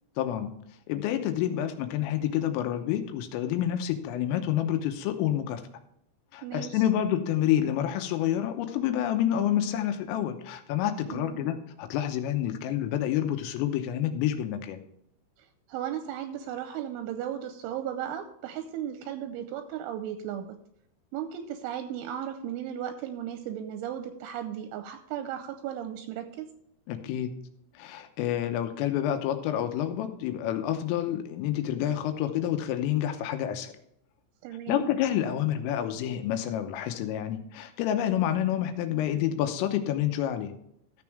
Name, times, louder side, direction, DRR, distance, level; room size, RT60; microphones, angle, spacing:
voice 1, 0.2-0.5 0.9-5.6 6.3-14.8 26.9-27.3 27.8-33.7 34.7-40.5, left 11 dB, 85° left, 7 dB, 3.5 m, -28 dB
voice 2, 6.4-6.8 11.1-11.5 15.7-20.5 21.1-26.5 34.4-34.9, right 10 dB, 85° right, 7 dB, 2.9 m, -35 dB
14.0 x 7.1 x 3.3 m, 0.74 s
omnidirectional pair, 6.0 m